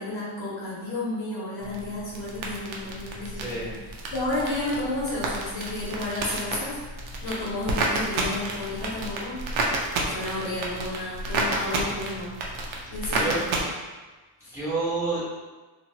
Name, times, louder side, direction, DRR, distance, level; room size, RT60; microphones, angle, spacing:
voice 1, 0.0-3.7 4.1-6.8 7.2-9.4 10.1-12.3 12.9-13.4 14.4-14.5, left 2 dB, 70° left, -7 dB, 1.3 m, -31 dB
sound 1, 1.6-13.6, right 2 dB, 80° right, 0.7 m, -31 dB
voice 2, 3.3-3.7 13.2-13.4 14.5-15.2, right 3 dB, 5° right, -12 dB, 1.2 m, -28 dB
2.8 x 2.6 x 2.7 m, 1.3 s
cardioid pair, 160°, 47 cm